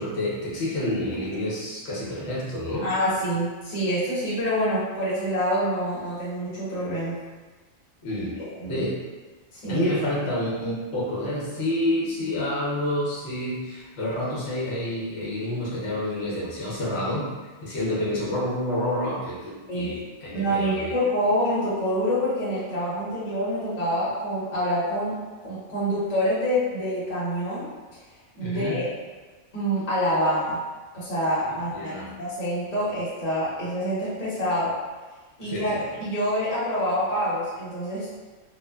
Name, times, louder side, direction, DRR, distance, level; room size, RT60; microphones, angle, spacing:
voice 1, 0.0-2.9 8.0-8.4 8.7-9.0 9.7-17.3 17.6-20.9 28.4-28.8 31.5-32.1 35.4-35.8, left 1 dB, 65° left, -6 dB, 1.0 m, -28 dB
voice 2, 2.8-7.1 8.5-8.9 9.5-9.9 19.7-19.9 20.3-25.2 25.4-27.7 28.3-28.9 29.5-30.6 30.9-34.7 35.4-35.7 36.0-38.1, equal, 35° left, -10 dB, 0.9 m, -26 dB
3.0 x 2.1 x 2.2 m, 1.3 s
omnidirectional pair, 1.2 m